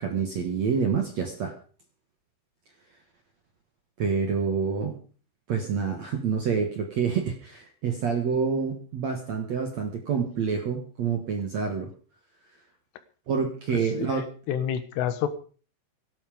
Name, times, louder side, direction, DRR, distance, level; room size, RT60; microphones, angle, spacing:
voice 1, 0.0-1.5 4.0-5.0 5.5-11.9 13.3-14.2, right 6 dB, 50° right, 4 dB, 2.3 m, -27 dB
voice 2, 13.7-15.3, left 9 dB, 80° left, 11 dB, 3.5 m, -29 dB
17.5 x 11.5 x 5.3 m, 0.40 s
omnidirectional pair, 4.8 m